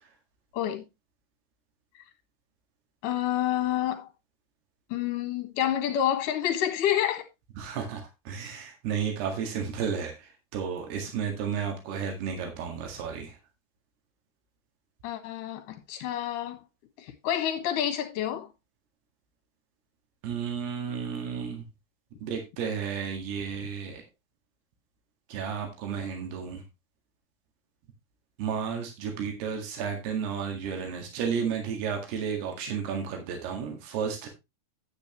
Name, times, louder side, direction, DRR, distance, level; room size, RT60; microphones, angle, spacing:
voice 1, 0.5-0.8 3.0-4.1 4.9-7.2 15.0-16.6 17.0-18.5, left 11 dB, 65° left, 2.8 m, -28 dB
voice 2, 7.6-13.4 20.2-21.7 22.2-24.0 25.3-26.6 28.4-34.3, right 7 dB, 80° right, 3.9 m, -32 dB
9.7 x 9.2 x 3.0 m
omnidirectional pair, 4.5 m